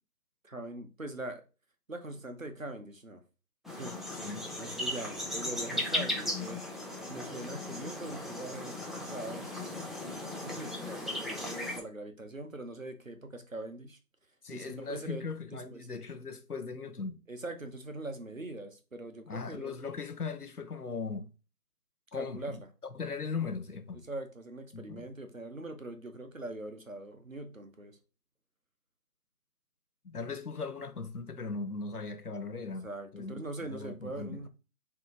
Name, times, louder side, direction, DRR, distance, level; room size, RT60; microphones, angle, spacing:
voice 1, 0.4-1.4 1.9-3.2 3.7-3.9 4.6-6.6 7.1-9.5 10.4-14.0 14.5-15.2 15.5-15.8 17.3-19.7 22.1-22.7 24.1-28.0 32.8-34.5, right 2 dB, 55° right, 0.7 m, -42 dB
sound 1, 3.6-11.8, left 1 dB, ahead, 0.5 m, -37 dB
voice 2, 4.2-4.5 14.4-17.2 19.3-21.3 22.1-22.6 22.9-24.0 24.7-25.1 30.0-32.9 33.1-34.5, left 4 dB, 65° left, 0.7 m, -39 dB
3.5 x 2.8 x 3.8 m
figure-of-eight pair, 180°, 50 cm